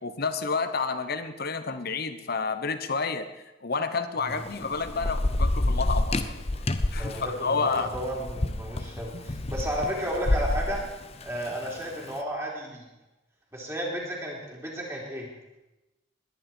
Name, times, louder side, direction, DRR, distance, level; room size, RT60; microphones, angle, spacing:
voice 1, 0.0-3.3 3.6-6.6 6.9-7.9, left 4 dB, 50° left, 10 dB, 1.1 m, -30 dB
Thunder / Rain, 4.3-11.9, left 1 dB, 30° left, 0.8 m, -28 dB
voice 2, 6.9-10.8 11.2-12.9 13.5-15.3, equal, 15° right, -3 dB, 3.8 m, -33 dB
20.5 x 11.0 x 4.5 m, 0.98 s
head